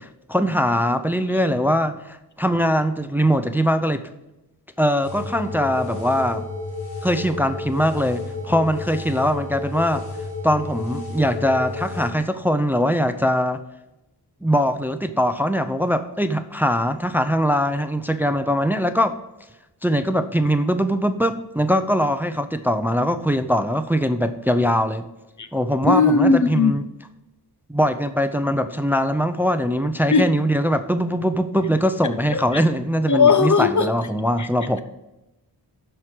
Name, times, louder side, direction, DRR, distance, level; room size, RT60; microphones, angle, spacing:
voice 1, 0.0-4.1 4.8-6.5 7.0-10.1 10.4-13.6 14.4-19.1 19.8-25.0 25.5-26.8 27.7-34.8, equal, 5° right, 0.5 m, -21 dB
sound 1, 5.0-12.1, left 3 dB, 65° left, 2.8 m, -32 dB
voice 2, 25.9-26.8 30.1-30.3 33.1-33.9 34.4-34.5, left 4 dB, 45° left, 0.7 m, -17 dB
12.0 x 4.6 x 4.9 m
wide cardioid pair, 70°, 40 cm